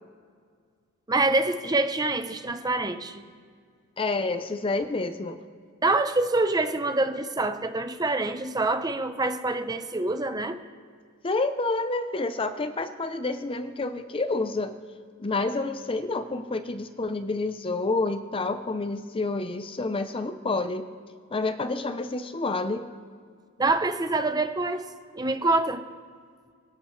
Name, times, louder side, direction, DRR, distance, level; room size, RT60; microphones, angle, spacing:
voice 1, 1.1-3.2 5.8-10.6 23.6-24.8 25.1-25.8, right 2 dB, 20° right, 9 dB, 0.6 m, -26 dB
voice 2, 4.0-5.4 11.2-14.7 15.2-20.9 21.3-22.9, left 3 dB, 25° left, 10 dB, 0.6 m, -29 dB
24.0 x 13.5 x 3.2 m, 2.1 s
head